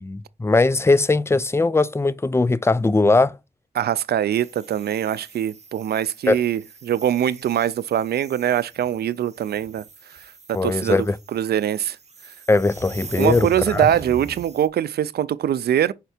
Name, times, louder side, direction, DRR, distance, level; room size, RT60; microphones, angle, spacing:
voice 1, 0.0-3.3 6.3-6.4 10.5-11.2 12.5-13.9, left 3 dB, 15° left, 0.5 m, -19 dB
voice 2, 3.7-9.8 10.5-11.1 11.3-12.0 13.2-15.9, right 10 dB, 85° right, 0.4 m, -23 dB
sound 1, 4.3-14.7, right 5 dB, 45° right, 1.5 m, -42 dB
5.7 x 4.5 x 4.2 m
cardioid pair, 60°, 16 cm